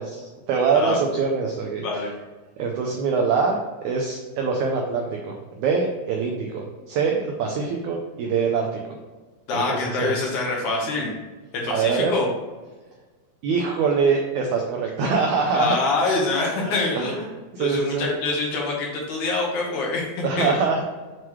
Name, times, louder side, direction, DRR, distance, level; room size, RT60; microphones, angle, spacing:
voice 1, 0.0-1.9 2.6-3.6 3.8-8.8 9.5-10.1 11.7-12.1 13.4-15.8 16.6-17.2 17.5-18.1 20.2-20.8, right 5 dB, 80° right, 1 dB, 1.7 m, -24 dB
voice 2, 9.5-11.1 11.5-12.3 15.5-17.1 17.6-20.5, left 3 dB, 65° left, -2 dB, 2.2 m, -25 dB
7.7 x 3.1 x 4.6 m, 1.3 s
omnidirectional pair, 4.1 m